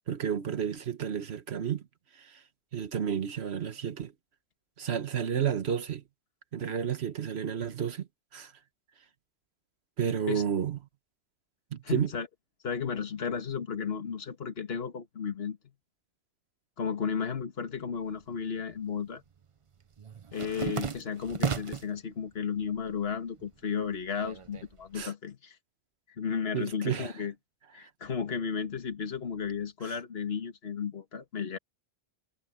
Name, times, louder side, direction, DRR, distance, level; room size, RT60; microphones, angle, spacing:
voice 1, 0.1-1.8 2.2-2.4 2.7-4.1 4.8-6.0 6.5-8.1 8.3-8.5 10.0-10.8 11.7-12.1 24.9-25.1 26.5-27.1 29.8-29.9, right 8 dB, 80° right, 1.3 m, -31 dB
voice 2, 11.8-12.3 12.6-15.6 16.8-19.2 20.3-25.6 26.2-27.3 27.7-31.6, left 6 dB, 70° left, 1.8 m, -34 dB
sound 1, 18.1-18.9 19.2-22.0 22.4-23.1 23.4-25.1, right 6 dB, 35° right, 0.6 m, -36 dB
omnidirectional pair, 1.1 m